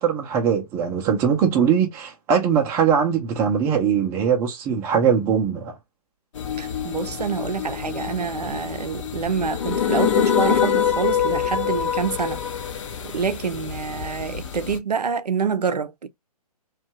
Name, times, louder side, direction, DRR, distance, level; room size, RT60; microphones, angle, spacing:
voice 1, 0.0-5.7, right 7 dB, 10° right, 0.4 m, -21 dB
sound 1, 6.3-14.8, left 8 dB, 50° left, 0.6 m, -25 dB
voice 2, 6.6-12.4 12.7-16.1, right 6 dB, 85° right, 0.5 m, -27 dB
2.6 x 2.3 x 2.8 m
figure-of-eight pair, 135°, 20 cm